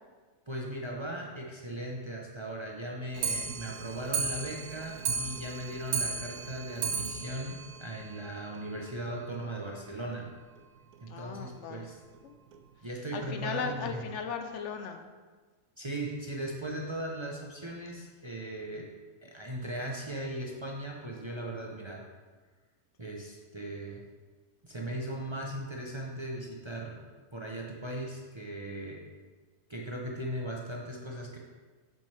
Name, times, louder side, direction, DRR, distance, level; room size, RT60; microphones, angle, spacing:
voice 1, 0.5-10.3 11.0-12.0 12.8-14.0 15.8-18.9 19.2-22.0 23.0-24.0 24.6-27.0 27.3-29.0 29.7-31.4, right 1 dB, 30° right, -2 dB, 0.5 m, -38 dB
Clock, 3.1-8.6 9.0-9.1 9.3-9.4 9.8-9.9 10.1-10.2 10.9-11.0 11.7-11.8 12.5-12.6, right 5 dB, 75° right, 1.1 m, -35 dB
voice 2, 11.1-11.9 12.2-12.4 13.1-15.0, left 6 dB, 60° left, 6 dB, 0.8 m, -37 dB
7.9 x 7.1 x 3.3 m, 1.4 s
omnidirectional pair, 1.7 m